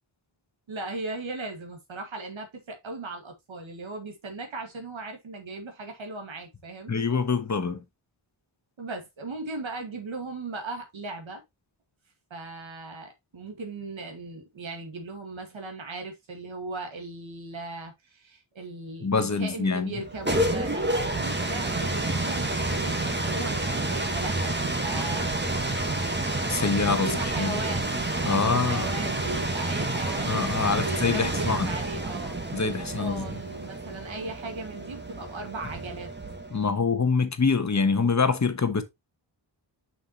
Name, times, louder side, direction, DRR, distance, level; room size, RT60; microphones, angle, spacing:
voice 1, 0.7-7.0 8.8-11.4 12.3-25.3 26.9-30.5 30.7-36.1, right 2 dB, 75° right, 2.1 m, -38 dB
voice 2, 6.9-7.8 19.0-19.9 26.5-27.6 28.2-28.9 30.2-31.7 32.5-33.3 36.5-38.8, left 5 dB, 35° left, 1.3 m, -25 dB
sound 1, 20.0-36.7, right 2 dB, 25° right, 1.6 m, -29 dB
7.0 x 6.0 x 3.0 m
wide cardioid pair, 120°, 47 cm